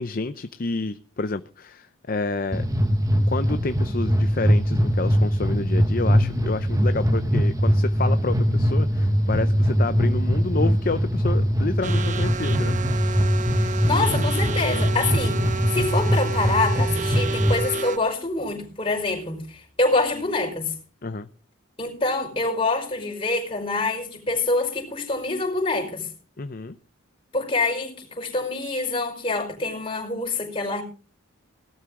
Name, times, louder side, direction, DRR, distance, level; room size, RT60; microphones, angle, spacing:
voice 1, 0.0-2.7 3.3-12.8 21.0-21.3 26.4-26.8, left 3 dB, 45° left, 11 dB, 0.6 m, -29 dB
sound 1, 2.5-17.7, equal, 15° right, 1.3 m, -22 dB
sound 2, 11.8-18.0, right 4 dB, 35° right, 0.7 m, -31 dB
voice 2, 13.6-20.7 21.8-26.1 27.3-30.8, left 3 dB, 25° left, 0 dB, 5.2 m, -26 dB
18.5 x 12.5 x 3.7 m, 0.38 s
head